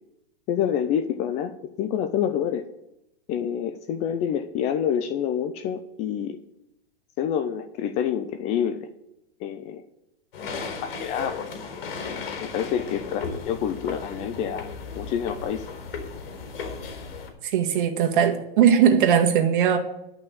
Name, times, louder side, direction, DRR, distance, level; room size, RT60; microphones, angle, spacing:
voice 1, 0.5-2.6 3.3-6.4 7.2-8.9 9.4-9.8 10.8-11.8 12.4-14.7 14.9-15.6, left 9 dB, 20° left, 10 dB, 0.5 m, -27 dB
sound 1, 10.3-17.3, left 5 dB, 70° left, 4.3 m, -35 dB
voice 2, 17.4-19.8, right 8 dB, 55° right, 4 dB, 1.9 m, -19 dB
11.5 x 5.9 x 8.4 m, 0.86 s
hypercardioid pair, 145°, 30 cm